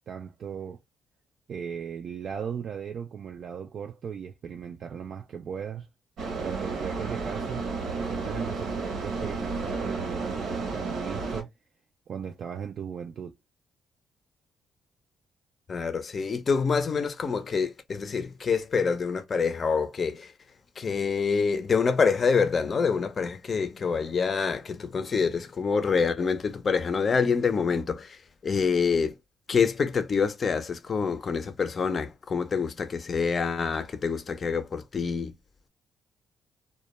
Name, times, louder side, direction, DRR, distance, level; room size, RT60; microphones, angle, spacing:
voice 1, 0.1-0.8 1.5-5.9 6.4-11.5 12.1-13.4, right 7 dB, 60° right, 0.3 m, -37 dB
sound 1, 6.2-11.4, right 4 dB, 75° right, 0.9 m, -32 dB
voice 2, 15.7-20.3 20.8-28.2 28.4-29.1 29.5-35.3, left 5 dB, 40° left, 0.5 m, -26 dB
2.2 x 2.1 x 2.9 m
cardioid pair, 90°, 0 cm